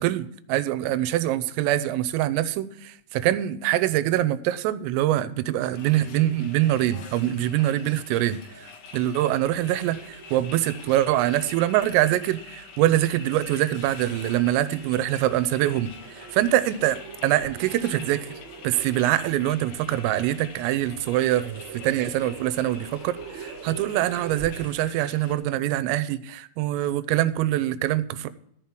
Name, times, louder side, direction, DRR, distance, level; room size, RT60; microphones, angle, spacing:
voice 1, 0.0-18.3 18.6-28.3, right 13 dB, 85° right, 3.3 m, -24 dB
sound 1, 5.7-25.3, left 5 dB, 60° left, 3.3 m, -45 dB
sound 2, 9.3-25.0, right 6 dB, 25° right, 4.3 m, -44 dB
14.0 x 5.8 x 7.6 m
omnidirectional pair, 5.9 m